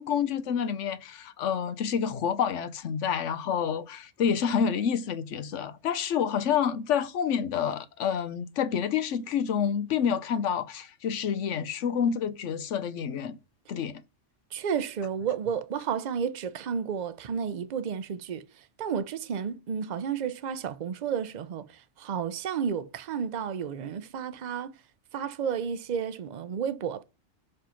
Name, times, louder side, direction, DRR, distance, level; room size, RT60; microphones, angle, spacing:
voice 1, 0.0-13.4 13.7-14.0, left 7 dB, 80° left, 1.1 m, -28 dB
voice 2, 14.5-18.4 18.8-24.7 25.1-27.0, right 7 dB, 45° right, 0.6 m, -32 dB
5.7 x 5.2 x 5.7 m
omnidirectional pair, 1.3 m